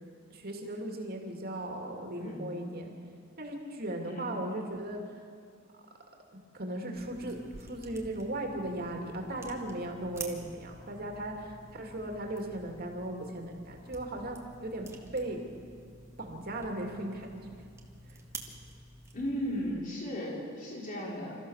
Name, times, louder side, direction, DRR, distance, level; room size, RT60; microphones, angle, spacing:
voice 1, 0.3-2.9 3.4-5.0 6.5-14.9 15.1-15.4 16.2-17.3, right 1 dB, 50° right, 2 dB, 2.7 m, -37 dB
voice 2, 4.0-4.4 19.1-21.4, equal, 40° left, -2 dB, 3.9 m, -36 dB
sound 1, 6.9-19.7, right 2 dB, 15° right, 1.8 m, -49 dB
27.5 x 14.5 x 6.6 m, 2.2 s
head